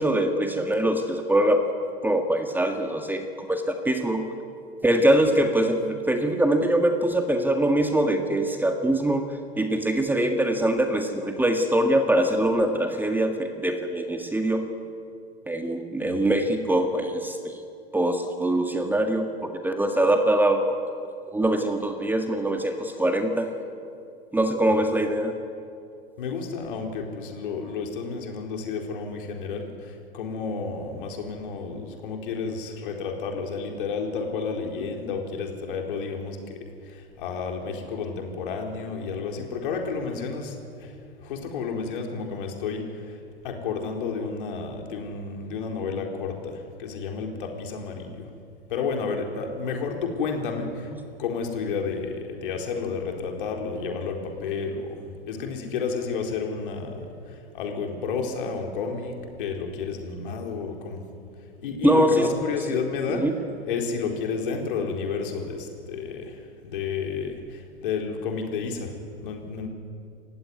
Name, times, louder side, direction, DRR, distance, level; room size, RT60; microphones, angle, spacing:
voice 1, 0.0-1.6 2.0-4.3 4.8-14.7 15.5-17.5 17.9-20.8 21.3-23.5 24.3-25.3 61.8-62.3 62.7-62.8 63.1-63.3, right 1 dB, 5° right, 5 dB, 1.7 m, -23 dB
voice 2, 26.2-36.4 36.8-41.0 41.2-43.2 43.4-48.3 48.7-50.9 51.2-61.0 61.6-63.3 63.6-68.9 69.2-69.7, left 5 dB, 55° left, 2 dB, 4.3 m, -31 dB
28.5 x 16.0 x 9.4 m, 2.6 s
figure-of-eight pair, 90°, 31 cm